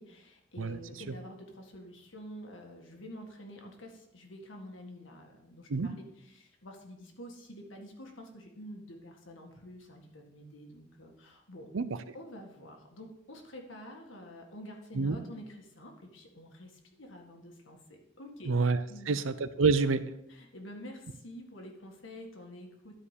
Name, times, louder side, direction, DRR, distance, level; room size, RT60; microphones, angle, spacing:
voice 1, 0.0-11.7 12.1-18.5 18.9-19.2 20.3-23.0, equal, 75° left, 2 dB, 1.8 m, -48 dB
voice 2, 18.5-20.0, right 4 dB, 80° right, 13 dB, 0.6 m, -27 dB
12.0 x 4.9 x 5.1 m, 0.79 s
head